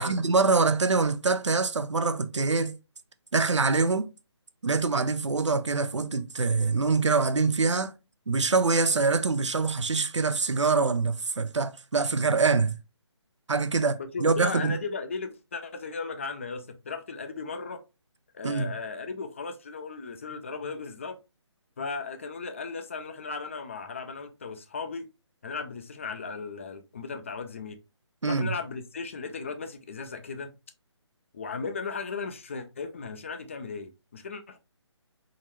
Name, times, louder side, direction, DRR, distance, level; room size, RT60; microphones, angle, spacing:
voice 1, 0.0-2.8 3.3-4.1 4.6-7.9 8.3-12.8 13.5-14.8 18.4-18.7 28.2-28.5, right 4 dB, 80° right, 0.5 m, -24 dB
voice 2, 14.0-17.8 18.3-21.2 21.8-25.1 25.4-27.8 28.2-30.5 31.3-34.6, left 4 dB, 25° left, 0.4 m, -36 dB
3.8 x 3.1 x 3.0 m
figure-of-eight pair, 150°, 15 cm